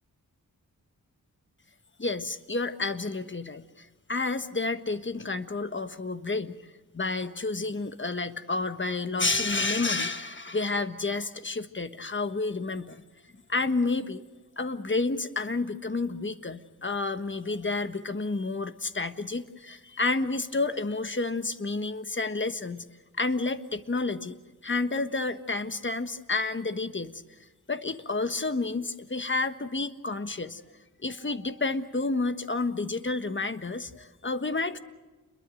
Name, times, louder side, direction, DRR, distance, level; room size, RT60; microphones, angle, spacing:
voice 1, 2.0-6.6 6.9-13.0 13.5-14.2 14.6-22.8 23.2-24.4 24.6-27.1 27.7-30.6 31.0-34.8, left 3 dB, 35° left, 10 dB, 1.4 m, -30 dB
28.5 x 22.0 x 6.4 m, 1.2 s
wide cardioid pair, 75°, 34 cm